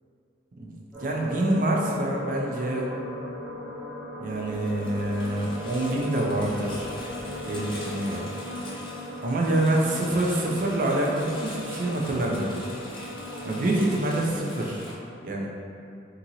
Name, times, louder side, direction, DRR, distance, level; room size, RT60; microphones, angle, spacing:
sound 1, 0.9-14.0, left 1 dB, ahead, 0.9 m, -38 dB
voice 1, 1.0-2.9 4.2-6.9 7.5-8.3 9.2-12.6 13.4-14.9 15.2-15.5, right 1 dB, 45° right, -1 dB, 0.4 m, -26 dB
Engine, 4.3-14.9, left 2 dB, 30° left, 0.3 m, -42 dB
2.8 x 2.5 x 2.7 m, 2.5 s
head